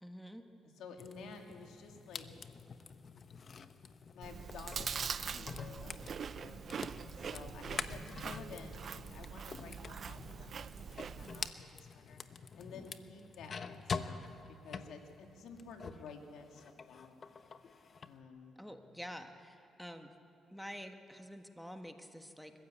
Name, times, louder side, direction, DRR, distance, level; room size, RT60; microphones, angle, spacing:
voice 1, 0.0-0.4 18.6-20.1 20.5-22.5, equal, ahead, 5 dB, 1.4 m, -48 dB
voice 2, 0.6-2.3 4.1-6.6 7.2-12.2 12.6-17.2 18.0-18.6, left 4 dB, 80° left, 3 dB, 2.3 m, -52 dB
sound 1, 1.0-16.1 16.5-18.1, left 5 dB, 45° left, 0.9 m, -46 dB
Chewing mastication, 4.2-11.5, right 7 dB, 50° right, 0.6 m, -43 dB
22.5 x 15.0 x 8.5 m, 2.6 s
cardioid pair, 90°, 0 cm